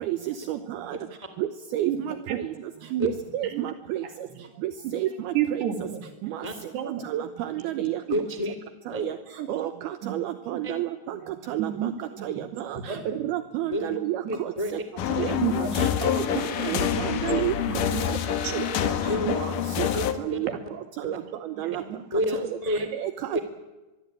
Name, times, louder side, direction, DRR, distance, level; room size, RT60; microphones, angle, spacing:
voice 1, 0.1-1.0 1.4-2.4 3.0-4.0 4.6-5.6 6.2-6.5 7.0-8.0 8.9-9.2 9.5-11.2 11.5-11.9 12.2-14.5 15.1-15.3 15.5-16.2 16.6-17.5 18.5-18.7 19.3-19.9 20.2-20.5 21.0-21.8 22.7-23.4, right 13 dB, 80° right, 10 dB, 2.3 m, -31 dB
voice 2, 5.3-6.1 6.5-7.1 7.7-8.2 9.4-9.6 10.0-10.1 10.5-10.6 11.6-11.9 12.2-12.3 12.7-13.0 14.2-14.4 15.4-15.9 16.2-17.0 17.7-18.0 18.4-18.5 19.2-19.3 21.6-22.0, right 10 dB, 60° right, 6 dB, 4.2 m, -31 dB
voice 3, 8.1-8.5 8.9-9.0 10.6-10.7 12.9-13.0 13.7-14.0 14.3-14.7 15.2-15.3 18.7-18.8 19.0-19.4 19.8-20.4 21.7-21.8 22.1-22.9 23.3-23.4, equal, 15° left, 8 dB, 1.4 m, -29 dB
sound 1, 15.0-20.1, left 9 dB, 70° left, 2.1 m, -27 dB
23.5 x 22.5 x 8.9 m, 1.1 s
omnidirectional pair, 5.6 m